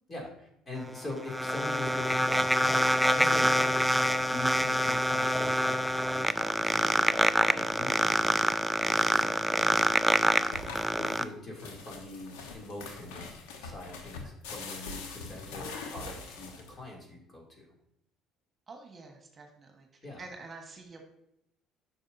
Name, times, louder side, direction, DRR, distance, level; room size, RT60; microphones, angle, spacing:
voice 1, 0.1-8.3 8.8-9.7 10.3-17.7 20.0-20.2, left 1 dB, 30° left, -1 dB, 2.8 m, -43 dB
sound 1, 0.8-11.2, equal, ahead, 0.4 m, -26 dB
sound 2, 9.6-16.9, left 4 dB, 85° left, 1.1 m, -43 dB
voice 2, 18.7-21.0, right 3 dB, 35° right, 3 dB, 1.5 m, -48 dB
9.3 x 6.1 x 2.7 m, 0.78 s
supercardioid pair, 80°, 0 cm